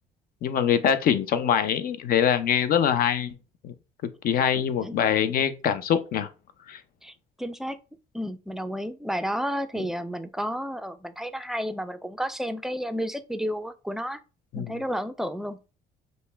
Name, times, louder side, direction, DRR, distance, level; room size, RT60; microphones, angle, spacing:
voice 1, 0.4-3.3 3.6-3.7 4.0-6.3 6.7-6.8 9.8-9.9 14.5-14.8, left 8 dB, 60° left, 0.6 m, -24 dB
voice 2, 7.0-7.8 8.1-14.2 14.5-15.6, equal, ahead, 0.4 m, -31 dB
5.3 x 2.1 x 3.3 m
cardioid pair, 110°, 17 cm